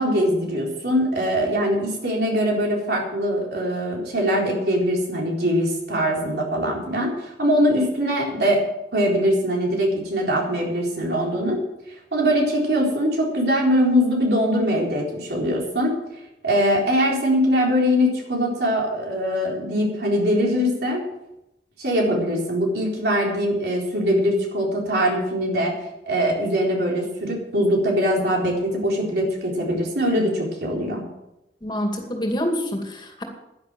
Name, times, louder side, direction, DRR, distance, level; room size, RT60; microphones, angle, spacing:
voice 1, 0.0-8.6 8.9-11.6 12.1-15.9 16.4-21.0 21.8-25.7 26.1-31.0, equal, 65° right, -1 dB, 4.1 m, -22 dB
voice 2, 31.6-33.2, equal, 25° left, 2 dB, 2.4 m, -26 dB
11.0 x 11.0 x 7.6 m, 0.88 s
head